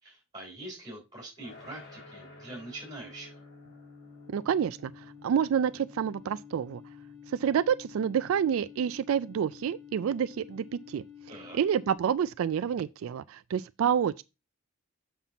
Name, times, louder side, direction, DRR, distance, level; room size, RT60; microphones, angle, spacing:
voice 1, 0.0-3.4 11.3-11.6, right 1 dB, 20° right, 3.5 m, -44 dB
sound 1, 1.4-12.3, left 1 dB, 55° left, 2.4 m, -55 dB
sound 2, 1.7-12.0, left 9 dB, 15° left, 3.3 m, -51 dB
voice 2, 4.3-6.8 7.3-11.0 11.5-14.2, right 8 dB, 80° right, 0.3 m, -28 dB
7.4 x 5.8 x 4.0 m
head